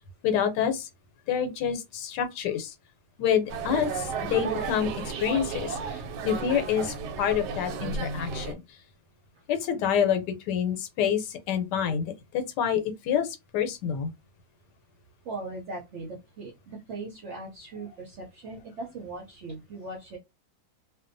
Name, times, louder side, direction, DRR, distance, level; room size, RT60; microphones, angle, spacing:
voice 1, 0.2-0.9 1.3-2.7 3.2-8.6 9.5-12.1 12.3-13.3 13.5-14.1, left 8 dB, 90° left, 1.2 m, -27 dB
sound 1, 3.5-8.5, right 5 dB, 85° right, 1.2 m, -33 dB
voice 2, 15.2-20.2, right 3 dB, 65° right, 0.7 m, -39 dB
2.6 x 2.2 x 2.5 m
omnidirectional pair, 1.8 m